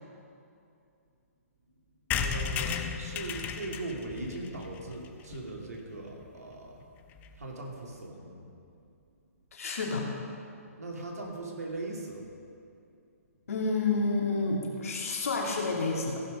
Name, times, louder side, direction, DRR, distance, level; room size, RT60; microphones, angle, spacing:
sound 1, 2.1-5.8 6.2-6.3 6.5-6.6 6.8-6.9 7.1-7.4, left 7 dB, 20° left, 0.6 m, -35 dB
voice 1, 2.1-6.7 7.4-8.5 8.8-8.9 10.8-12.3, right 2 dB, 85° right, -1 dB, 2.5 m, -39 dB
voice 2, 9.5-10.1 13.5-16.2, left 3 dB, 70° left, -1 dB, 2.5 m, -29 dB
16.5 x 6.0 x 5.1 m, 2.5 s
hypercardioid pair, 140°, 8 cm